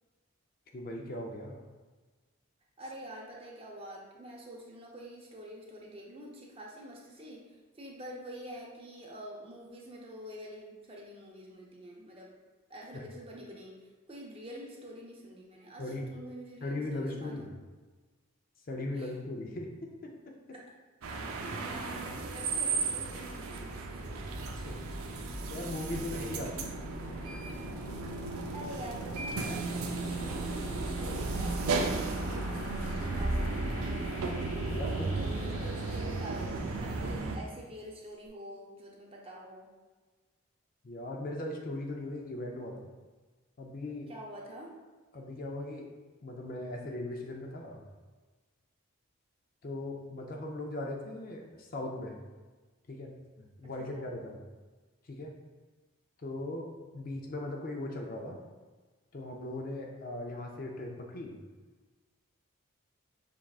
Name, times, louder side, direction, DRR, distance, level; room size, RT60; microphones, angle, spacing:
voice 1, 0.7-1.7 12.9-13.1 15.8-16.1 16.6-17.5 18.7-20.4 24.3-24.9 25.4-26.7 34.7-35.2 40.8-42.9 43.6-44.1 45.1-45.9 46.2-47.8 49.6-52.2 52.9-54.4 55.0-55.4 56.2-58.4 59.1-61.4, left 1 dB, 40° left, 1 dB, 0.5 m, -39 dB
voice 2, 2.8-12.3 12.7-17.5 18.9-19.2 21.4-23.9 28.5-33.7 35.2-39.7 44.1-44.8 53.8-54.0, equal, 25° right, -2 dB, 0.6 m, -46 dB
sound 1, 21.0-37.4, right 3 dB, 80° right, 0.5 m, -34 dB
sound 2, 23.5-37.3, left 1 dB, 75° left, 0.8 m, -46 dB
5.9 x 3.5 x 2.3 m, 1.3 s
head